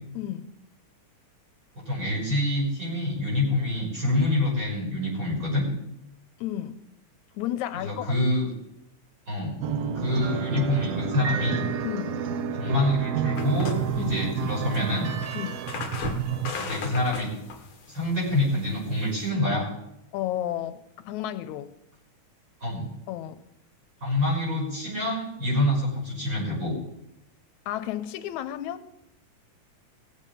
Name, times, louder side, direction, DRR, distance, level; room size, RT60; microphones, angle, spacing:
voice 1, 0.2-0.6 6.4-6.8 7.3-8.1 11.8-12.2 14.0-14.2 15.3-15.7 20.1-21.7 23.1-23.4 27.7-28.9, left 12 dB, 85° left, 11 dB, 2.1 m, -32 dB
voice 2, 1.9-5.6 7.8-8.5 9.3-9.6 9.9-11.6 12.5-15.1 16.5-17.3 17.9-19.7 22.6-22.9 24.0-26.8, left 1 dB, 30° right, -3 dB, 6.5 m, -26 dB
sound 1, 9.6-16.5, right 8 dB, 80° right, 1.4 m, -30 dB
Piano, 11.2-12.7, right 5 dB, 60° right, 1.8 m, -37 dB
sound 2, 13.4-19.3, left 5 dB, 50° left, 1.8 m, -38 dB
18.5 x 7.4 x 5.4 m, 0.82 s
omnidirectional pair, 3.4 m